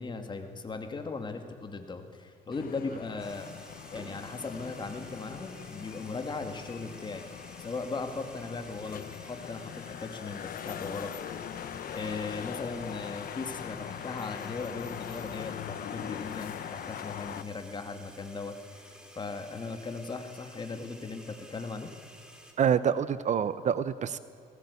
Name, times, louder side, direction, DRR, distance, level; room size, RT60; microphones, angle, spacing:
voice 1, 0.0-3.5 3.9-7.3 7.6-11.1 11.9-18.5 19.2-21.9, left 4 dB, 25° left, 6 dB, 2.3 m, -38 dB
sound 1, 2.5-17.4, left 9 dB, 60° left, 1.2 m, -41 dB
sound 2, 3.2-22.5, equal, 5° right, 3.4 m, -52 dB
voice 2, 22.6-24.2, right 8 dB, 45° right, 15 dB, 0.8 m, -26 dB
19.0 x 19.0 x 8.4 m, 2.4 s
cardioid pair, 110°, 17 cm